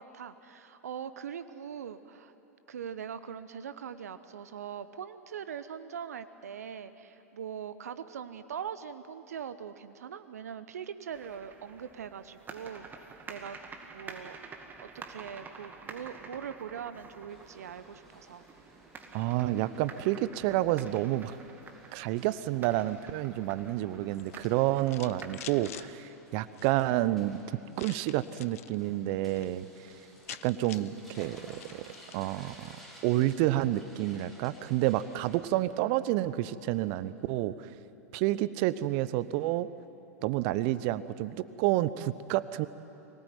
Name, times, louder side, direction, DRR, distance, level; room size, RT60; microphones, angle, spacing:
voice 1, 0.0-2.3 2.7-12.9 13.3-13.6 13.9-14.4 14.8-18.4, right 8 dB, 75° right, 12 dB, 0.9 m, -41 dB
sound 1, 11.1-25.9, right 4 dB, 20° right, 2.1 m, -49 dB
sound 2, 17.3-35.4, equal, ahead, 6.5 m, -56 dB
voice 2, 19.1-21.4 21.9-27.4 27.8-29.7 30.3-31.8 32.1-32.8 33.0-37.7 38.1-39.7 40.2-42.7, right 15 dB, 50° right, 16 dB, 0.8 m, -29 dB
sound 3, 24.1-25.9 26.5-27.0 27.7-28.7 29.1-29.5 29.8-29.9 30.0-32.3, left 13 dB, 65° left, 0.7 m, -48 dB
24.0 x 18.5 x 9.3 m, 2.9 s
figure-of-eight pair, 95°, 9 cm